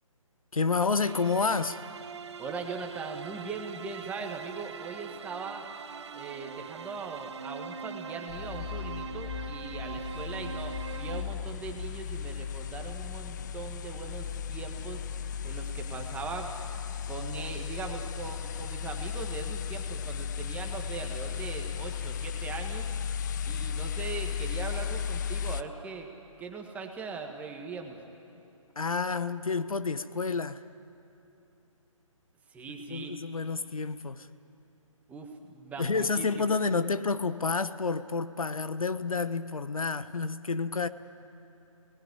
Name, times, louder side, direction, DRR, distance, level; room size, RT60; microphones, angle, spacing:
voice 1, 0.5-1.9 28.8-30.6 32.9-34.3 35.8-40.9, left 4 dB, 90° left, 1.0 m, -29 dB
sound 1, 1.0-11.2, right 6 dB, 55° right, 0.9 m, -42 dB
voice 2, 2.4-5.7 6.1-15.0 15.4-16.5 17.1-22.9 23.5-26.1 26.4-28.0 32.5-33.1 35.1-36.6, right 4 dB, 10° right, 1.6 m, -40 dB
sound 2, 8.3-25.6, left 7 dB, 35° left, 0.6 m, -35 dB
28.0 x 19.5 x 9.8 m
hypercardioid pair, 150°, 17 cm